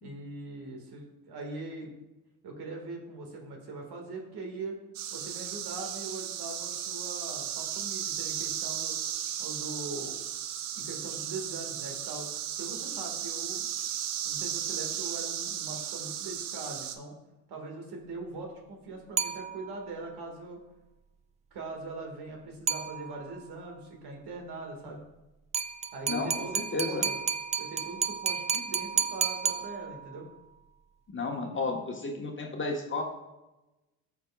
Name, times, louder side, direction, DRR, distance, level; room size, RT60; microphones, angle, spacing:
voice 1, 0.0-2.0 2.4-4.8 5.1-9.0 9.4-10.2 10.7-12.3 12.6-13.7 14.2-17.1 17.5-20.6 21.5-25.0 25.9-27.2 27.6-30.3, right 3 dB, 60° right, 2 dB, 2.0 m, -41 dB
sound 1, 4.9-17.0, right 10 dB, 80° right, 0.7 m, -35 dB
sound 2, 19.2-19.9 22.7-23.4 25.5-30.2, right 6 dB, 20° right, 0.3 m, -32 dB
voice 2, 26.1-27.1 31.1-33.0, left 3 dB, 25° left, 1 dB, 1.4 m, -33 dB
13.5 x 4.8 x 2.4 m, 1.0 s
hypercardioid pair, 60°, 44 cm